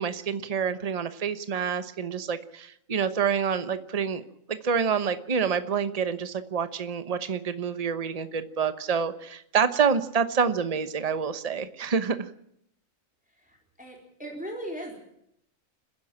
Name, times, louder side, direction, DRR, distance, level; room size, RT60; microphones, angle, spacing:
voice 1, 0.0-4.2 4.5-12.3, right 6 dB, 30° right, 11 dB, 1.0 m, -27 dB
voice 2, 13.3-15.0, right 1 dB, 5° right, -1 dB, 4.2 m, -38 dB
30.0 x 11.0 x 8.8 m, 0.75 s
omnidirectional pair, 1.4 m